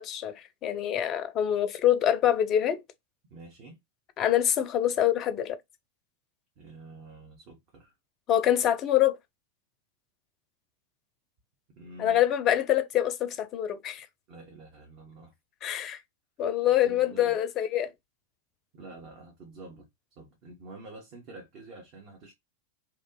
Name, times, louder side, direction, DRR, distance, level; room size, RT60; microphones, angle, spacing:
voice 1, 0.0-2.8 4.2-5.6 8.3-9.2 12.0-14.1 15.6-16.0 16.4-17.9, left 11 dB, 30° left, 0.5 m, -25 dB
voice 2, 3.3-3.8 6.6-7.9 11.8-12.2 14.3-15.3 16.8-17.4 18.7-19.9 20.2-22.3, right 2 dB, 40° right, 0.9 m, -47 dB
2.9 x 2.4 x 2.2 m
figure-of-eight pair, 90°, 0 cm